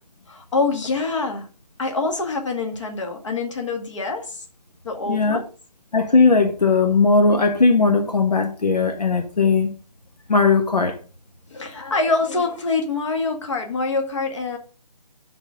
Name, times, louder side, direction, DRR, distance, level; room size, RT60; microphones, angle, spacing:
voice 1, 0.3-1.5 1.8-4.5 4.8-5.4 11.5-14.6, left 3 dB, 45° left, 1.9 m, -25 dB
voice 2, 5.1-5.4 5.9-9.7 10.3-11.0, left 4 dB, 70° left, 1.5 m, -18 dB
11.0 x 4.2 x 5.1 m
figure-of-eight pair, 160°, 21 cm